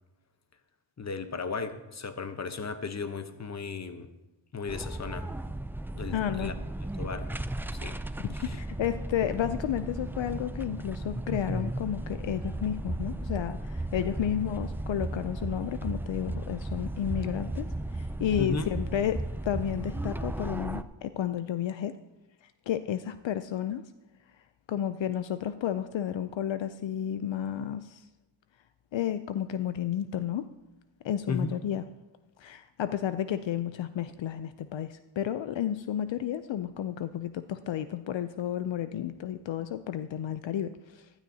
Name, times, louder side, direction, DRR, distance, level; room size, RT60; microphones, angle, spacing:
voice 1, 1.0-4.1 4.5-5.3 5.9-6.5 7.0-7.3 7.7-8.0 8.4-8.6 18.4-18.6 31.3-31.5, left 4 dB, 35° left, 9 dB, 0.9 m, -35 dB
sound 1, 4.7-20.8, right 1 dB, 5° right, 0.3 m, -35 dB
voice 2, 6.1-6.5 8.2-22.0 22.4-23.8 24.7-28.1 28.9-30.5 31.0-31.8 32.4-41.1, left 10 dB, 75° left, 11 dB, 0.5 m, -32 dB
15.5 x 12.0 x 2.8 m, 1.0 s
wide cardioid pair, 85°, 46 cm